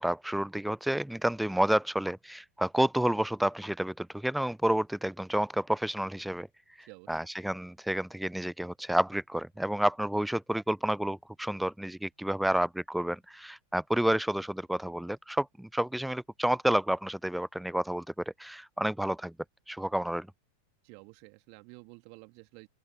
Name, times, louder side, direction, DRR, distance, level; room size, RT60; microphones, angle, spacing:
voice 1, 0.0-6.5 6.8-18.0 18.4-19.3 19.7-20.3, right 1 dB, ahead, 0.3 m, -30 dB
voice 2, 6.8-7.2 20.8-22.7, right 39 dB, 45° right, 2.3 m, -51 dB
open air
figure-of-eight pair, 90°, 0 cm